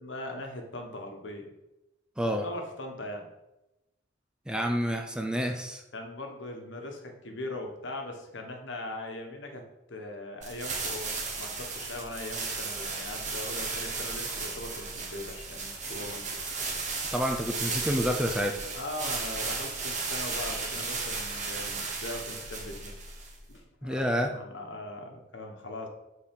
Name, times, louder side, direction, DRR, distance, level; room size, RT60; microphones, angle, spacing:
voice 1, 0.0-1.5 2.4-3.3 5.9-9.6 9.9-16.3 18.7-23.0 23.5-25.9, left 1 dB, 70° left, 3 dB, 1.2 m, -40 dB
voice 2, 4.5-5.8 17.1-18.6 23.8-24.3, equal, 5° right, 4 dB, 0.5 m, -28 dB
sound 1, 10.4-23.5, right 4 dB, 40° right, 1.5 m, -35 dB
7.2 x 4.4 x 5.3 m, 0.96 s
head